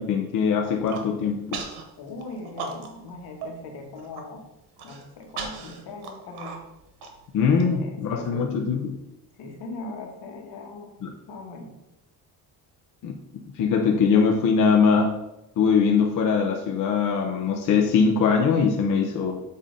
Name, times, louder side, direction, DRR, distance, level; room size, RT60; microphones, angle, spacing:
voice 1, 0.0-1.6 7.3-9.0 11.0-11.1 13.0-13.1 13.6-15.2 15.6-19.4, left 5 dB, 55° left, 2 dB, 0.7 m, -22 dB
Human voice, 0.6-1.1 1.5-1.8 2.2-3.1 3.4-3.5 3.9-4.2 4.8-7.6, right 5 dB, 80° right, 1.2 m, -37 dB
voice 2, 2.0-4.5 4.8-6.6 7.5-8.6 9.4-11.0 11.3-11.8, left 3 dB, 80° left, 2 dB, 1.3 m, -39 dB
7.5 x 2.7 x 5.0 m, 0.91 s
cardioid pair, 150°, 38 cm